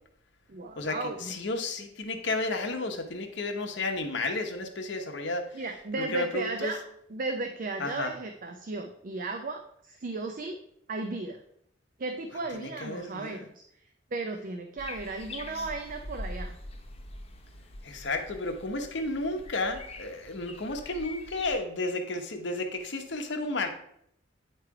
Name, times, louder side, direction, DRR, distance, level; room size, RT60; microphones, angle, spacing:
voice 1, 0.5-1.3 5.5-6.8 7.1-10.6 10.9-11.4 12.0-13.6 14.1-16.6, right 3 dB, 45° right, 5 dB, 0.5 m, -35 dB
voice 2, 1.2-5.6 6.0-6.7 7.8-8.1 12.5-13.5 17.8-23.7, left 2 dB, 65° left, 4 dB, 1.0 m, -32 dB
sound 1, 14.8-21.6, left 1 dB, 30° left, 0.9 m, -43 dB
9.0 x 3.3 x 4.7 m, 0.72 s
head